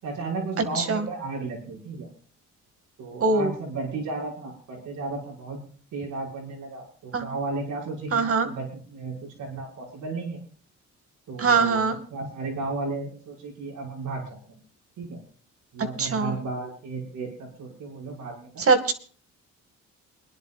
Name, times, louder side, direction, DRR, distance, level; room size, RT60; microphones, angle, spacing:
voice 1, 0.0-2.1 3.0-5.6 5.9-10.4 11.3-14.6 15.0-15.2 15.7-18.7, right 3 dB, 90° right, -3 dB, 6.0 m, -34 dB
voice 2, 3.2-3.5 7.1-7.3 8.1-8.5 11.4-12.0 16.0-16.3 18.7-18.9, right 4 dB, 50° right, 7 dB, 2.1 m, -22 dB
29.0 x 10.5 x 2.5 m, 0.42 s
cardioid pair, 90°, 30 cm